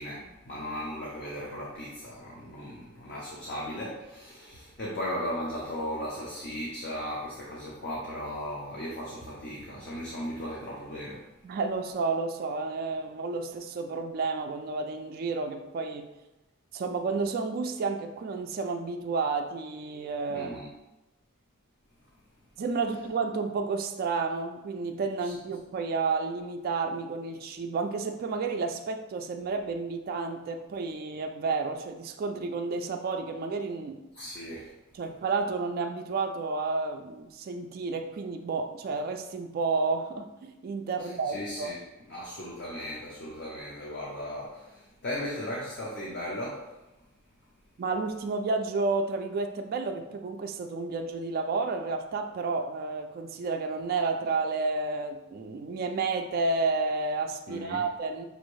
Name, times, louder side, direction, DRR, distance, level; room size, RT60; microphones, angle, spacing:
voice 1, 0.0-11.3 20.3-20.7 25.2-25.3 34.1-34.7 41.0-41.8 42.1-46.7 57.5-57.8, equal, 50° left, -4 dB, 0.7 m, -37 dB
voice 2, 11.4-16.1 16.7-20.5 22.6-34.0 34.9-41.8 47.8-58.3, right 4 dB, 45° right, 4 dB, 0.3 m, -31 dB
5.4 x 2.6 x 3.1 m, 0.99 s
head